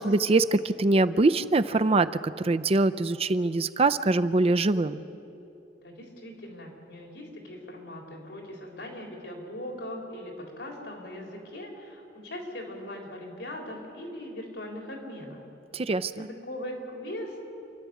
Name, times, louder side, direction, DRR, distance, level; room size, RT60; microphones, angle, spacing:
voice 1, 0.0-5.0 15.7-16.3, right 2 dB, 35° right, 12 dB, 0.5 m, -23 dB
voice 2, 5.8-15.4 16.1-17.4, left 1 dB, 85° left, 0 dB, 4.0 m, -40 dB
28.5 x 12.0 x 8.3 m, 2.8 s
head